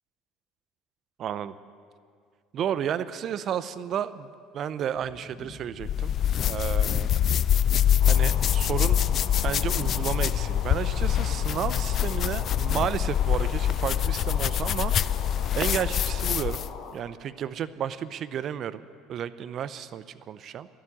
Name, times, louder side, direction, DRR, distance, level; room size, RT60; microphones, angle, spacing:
voice 1, 1.2-1.5 2.5-6.1 6.5-7.2 8.1-15.2 15.5-16.6 16.9-20.7, right 9 dB, 45° right, 15 dB, 0.5 m, -32 dB
sound 1, 4.9-13.5, left 2 dB, 10° left, 1.3 m, -47 dB
sound 2, 5.8-16.8, left 10 dB, 45° left, 0.3 m, -25 dB
sound 3, 8.0-16.9, left 4 dB, 65° left, 1.6 m, -42 dB
12.5 x 7.6 x 9.9 m, 2.1 s
figure-of-eight pair, 60°, 0 cm